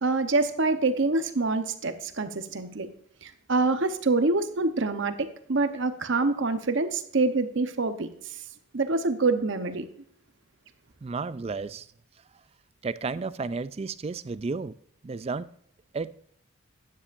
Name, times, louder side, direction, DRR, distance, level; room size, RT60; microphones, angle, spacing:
voice 1, 0.0-2.9 3.2-8.1 8.7-9.9, right 3 dB, 55° right, 0.9 m, -26 dB
voice 2, 11.0-11.9 12.8-14.7 15.0-15.5 15.9-16.1, right 4 dB, 25° right, 0.3 m, -32 dB
12.5 x 10.0 x 2.5 m
head